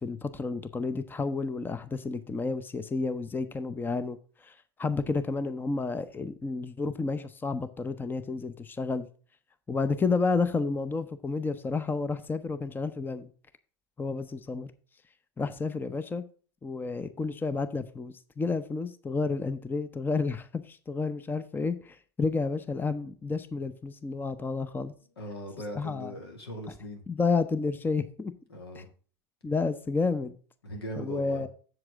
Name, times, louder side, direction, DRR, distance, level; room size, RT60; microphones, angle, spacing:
voice 1, 0.0-9.1 9.7-13.3 14.0-14.7 15.4-16.2 16.6-24.9 25.7-26.1 27.1-28.3 28.7-28.8 29.4-30.3 31.0-31.5, left 4 dB, 15° left, 12 dB, 0.7 m, -31 dB
voice 2, 25.2-27.0 28.5-28.9 30.6-31.5, equal, 80° left, 4 dB, 2.3 m, -39 dB
7.8 x 7.7 x 3.6 m, 0.39 s
figure-of-eight pair, 80°, 13 cm